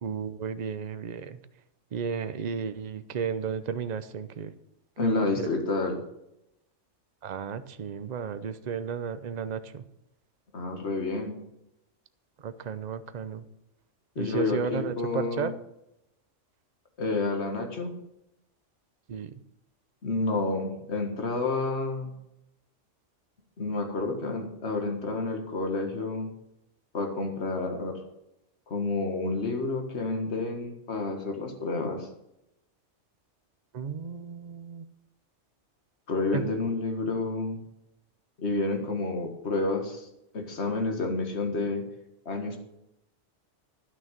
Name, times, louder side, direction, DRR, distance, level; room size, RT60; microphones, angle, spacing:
voice 1, 0.0-1.4 1.9-4.5 5.0-5.5 7.2-9.8 12.4-13.4 14.2-15.5 19.1-19.3 33.7-34.8 36.3-36.4, right 6 dB, 45° right, 12 dB, 0.7 m, -33 dB
voice 2, 5.0-6.0 10.5-11.4 14.2-15.5 17.0-18.0 20.0-22.1 23.6-26.3 26.9-28.0 28.7-32.1 36.1-37.6 38.4-40.1 40.3-41.9 42.3-42.6, left 3 dB, 60° left, 4 dB, 1.9 m, -29 dB
11.5 x 6.2 x 7.4 m, 0.85 s
omnidirectional pair, 1.3 m